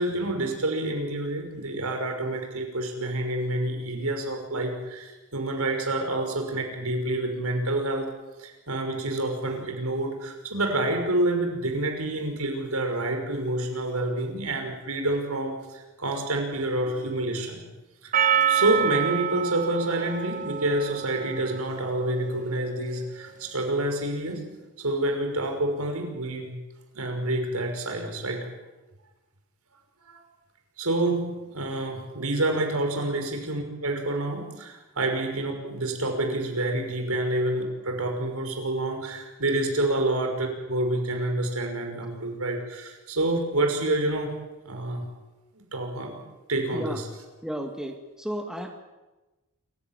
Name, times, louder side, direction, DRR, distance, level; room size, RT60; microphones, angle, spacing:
voice 1, 0.0-8.1 8.4-17.6 18.0-18.1 18.5-24.4 24.8-26.6 26.9-28.5 30.1-30.2 30.8-44.3 44.6-45.0 45.5-46.2 46.5-47.0, right 1 dB, 80° right, 3 dB, 5.7 m, -28 dB
Percussion, 18.1-22.4, right 9 dB, 35° right, 1.0 m, -27 dB
voice 2, 46.7-47.0 47.4-48.8, equal, 5° right, 3 dB, 2.0 m, -33 dB
27.5 x 16.0 x 9.1 m, 1.1 s
head